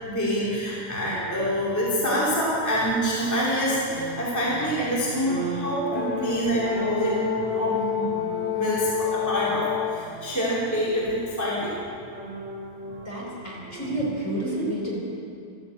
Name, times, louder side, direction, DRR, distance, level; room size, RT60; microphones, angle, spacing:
voice 1, 0.0-7.3 7.5-8.1 8.5-11.7, equal, 5° left, -7 dB, 2.1 m, -26 dB
sound 1, 3.1-14.4, right 3 dB, 35° right, 1.3 m, -38 dB
Brass instrument, 5.9-10.1, left 10 dB, 70° left, 1.4 m, -29 dB
voice 2, 13.0-15.0, right 1 dB, 25° left, -5 dB, 3.0 m, -29 dB
14.0 x 8.7 x 7.7 m, 2.5 s
omnidirectional pair, 3.7 m